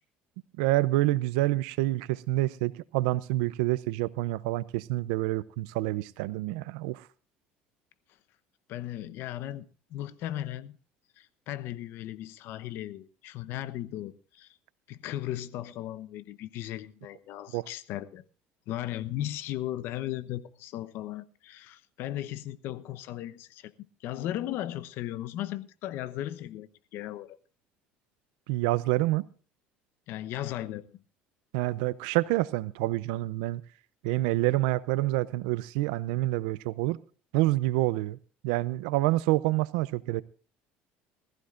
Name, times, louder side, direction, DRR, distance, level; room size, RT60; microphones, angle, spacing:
voice 1, 0.6-7.1 17.5-17.7 28.5-29.3 31.5-33.6 34.0-37.0 37.3-38.2 38.4-40.2, right 18 dB, 90° right, 0.5 m, -27 dB
voice 2, 8.7-10.8 11.2-14.6 14.9-18.2 18.7-23.7 24.0-27.4 30.1-31.0, left 13 dB, 65° left, 0.9 m, -36 dB
20.0 x 14.5 x 2.5 m
cardioid pair, 110°, 4 cm